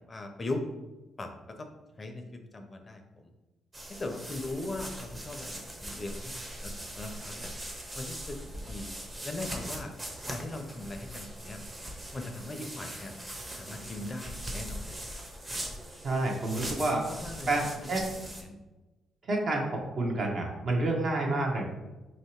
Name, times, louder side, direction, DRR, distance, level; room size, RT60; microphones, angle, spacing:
voice 1, 0.1-0.6 1.2-1.7 2.0-2.2 2.5-3.3 3.9-6.3 6.6-7.5 7.9-8.4 8.7-8.9 9.2-9.9 10.3-11.6 12.1-13.1 13.6-15.0 17.1-17.5 18.2-18.6, left 2 dB, 30° left, 5 dB, 0.5 m, -39 dB
sound 1, 3.7-18.4, right 1 dB, 20° right, 0.7 m, -41 dB
voice 2, 16.0-17.0 17.5-18.1 19.3-21.6, right 2 dB, 55° right, 0 dB, 0.9 m, -29 dB
3.0 x 2.8 x 4.4 m, 1.1 s
cardioid pair, 90°, 0 cm